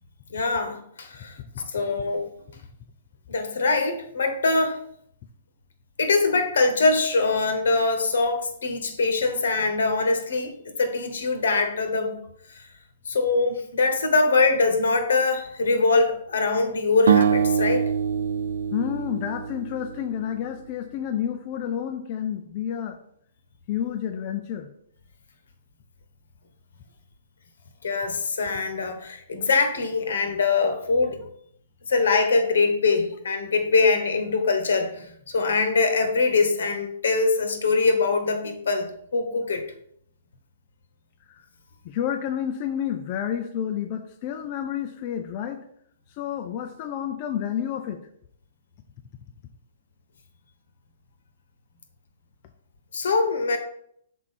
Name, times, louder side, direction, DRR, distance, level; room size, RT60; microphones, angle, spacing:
voice 1, 0.3-1.3 1.7-2.3 3.3-4.8 6.0-12.2 13.0-17.9 27.8-31.2 31.9-39.6 52.9-53.6, left 3 dB, 80° left, 7 dB, 1.2 m, -23 dB
sound 1, 17.1-20.2, right 7 dB, 85° right, 0.3 m, -24 dB
voice 2, 18.7-23.0 23.7-24.7 41.8-45.6 46.2-48.0, left 9 dB, 25° left, 6 dB, 0.4 m, -30 dB
6.1 x 4.4 x 4.1 m, 0.68 s
hypercardioid pair, 175°, 0 cm